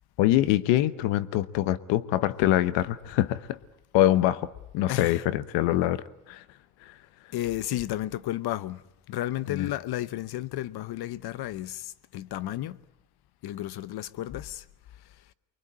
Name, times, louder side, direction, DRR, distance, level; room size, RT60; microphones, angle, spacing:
voice 1, 0.2-3.6 3.9-6.4 6.8-6.9 9.5-9.7, left 14 dB, 90° left, 1.1 m, -24 dB
voice 2, 4.9-5.3 7.3-8.8 9.1-12.8 13.4-14.6, left 14 dB, 60° left, 1.0 m, -32 dB
24.5 x 23.0 x 8.8 m
cardioid pair, 105°, 43 cm